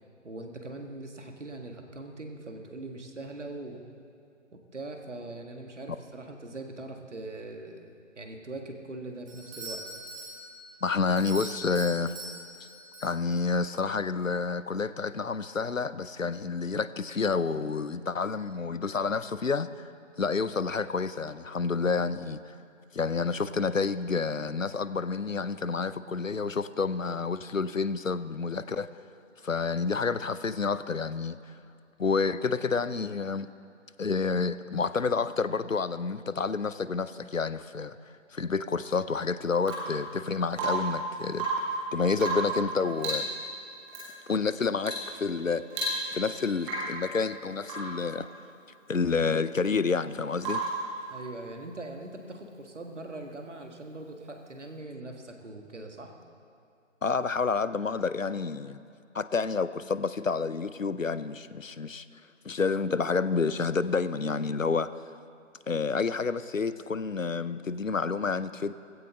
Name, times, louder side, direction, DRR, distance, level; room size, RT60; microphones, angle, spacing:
voice 1, 0.2-3.8 4.5-9.8 51.1-56.1, right 2 dB, 65° right, 3 dB, 1.9 m, -41 dB
Doorbell, 9.3-13.7, right 1 dB, 25° right, 3.2 m, -43 dB
voice 2, 10.8-12.1 13.0-19.9 20.2-22.4 22.9-28.9 29.4-31.4 32.0-33.5 34.0-38.0 38.3-41.5 41.9-43.3 44.3-45.6 46.1-48.3 48.9-50.6 57.0-58.8 59.1-62.1 62.4-64.9 65.7-68.7, left 4 dB, 90° left, 15 dB, 0.7 m, -29 dB
Rain / Water tap faucet / Drip, 39.6-40.0 40.5-41.0 41.3-41.8 42.2-42.6 43.0-43.3 43.9-44.1 44.8-45.1 45.4-45.5 45.7-46.3 46.6-47.0 47.6-48.0 50.4-50.8 52.7-52.8, right 2 dB, 5° right, 1.1 m, -32 dB
16.5 x 16.0 x 3.8 m, 2.4 s
figure-of-eight pair, 150°, 38 cm